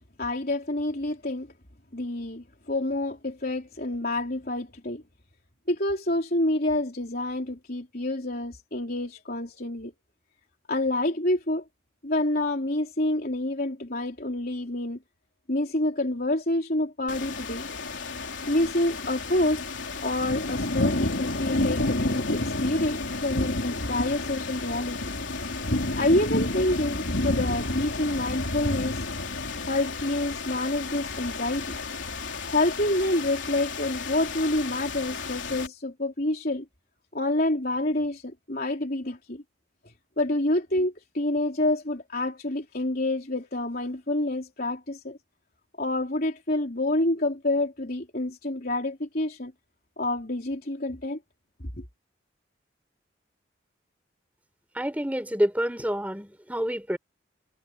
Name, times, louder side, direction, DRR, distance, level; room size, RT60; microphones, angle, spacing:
voice 1, 0.2-1.5 1.9-5.0 5.7-9.9 10.7-11.6 12.0-15.0 15.5-17.7 18.5-19.6 20.0-25.0 25.9-29.0 29.6-31.8 32.5-36.7 37.1-39.4 40.2-45.2 45.8-49.5 50.0-51.2, left 1 dB, 50° left, 3.8 m, -27 dB
sound 1, 17.1-35.7, left 2 dB, 80° left, 3.5 m, -30 dB
voice 2, 54.7-57.0, equal, 10° right, 3.4 m, -28 dB
head